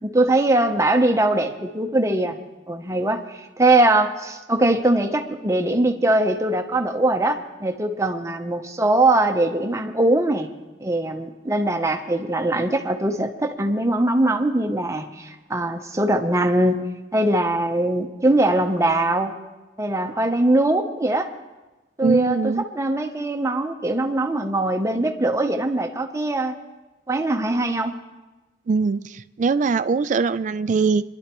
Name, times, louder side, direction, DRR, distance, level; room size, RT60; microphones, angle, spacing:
voice 1, 0.0-2.4 2.7-10.5 10.8-16.8 17.1-19.4 19.8-21.3 22.0-26.6 27.1-28.0, right 1 dB, 15° right, 5 dB, 0.8 m, -21 dB
voice 2, 22.0-22.6 28.7-31.0, right 4 dB, 40° right, 13 dB, 0.3 m, -21 dB
23.0 x 11.5 x 3.0 m, 1.1 s
head